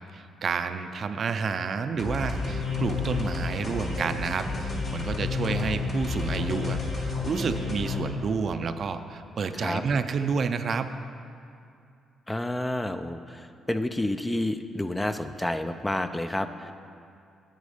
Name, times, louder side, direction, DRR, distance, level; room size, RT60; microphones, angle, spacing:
voice 1, 0.1-10.9, right 5 dB, 50° right, 9 dB, 0.5 m, -30 dB
sound 1, 2.0-8.0, left 4 dB, 55° left, 2.3 m, -30 dB
voice 2, 12.3-16.7, left 1 dB, 10° left, 9 dB, 0.4 m, -30 dB
9.3 x 8.1 x 5.0 m, 2.5 s
cardioid pair, 90°, 0 cm